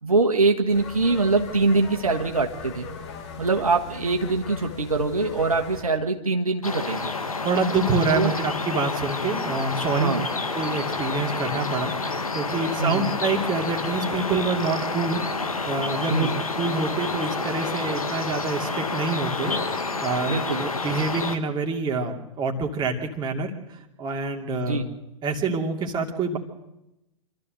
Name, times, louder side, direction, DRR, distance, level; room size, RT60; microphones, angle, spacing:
voice 1, 0.0-2.9 3.4-7.1 8.1-8.3 9.8-10.3 12.8-13.1 16.1-16.4 20.3-20.6 24.6-24.9, right 3 dB, 85° right, 2 dB, 1.6 m, -23 dB
sound 1, 0.7-5.8, left 5 dB, 55° left, 4.6 m, -39 dB
sound 2, 6.6-21.4, left 3 dB, 85° left, 1.7 m, -29 dB
voice 2, 7.4-10.1 10.5-16.3 16.6-20.3 20.6-24.8 25.2-26.4, right 3 dB, 25° right, 2 dB, 2.6 m, -27 dB
26.5 x 13.0 x 7.8 m, 0.92 s
figure-of-eight pair, 105°, 18 cm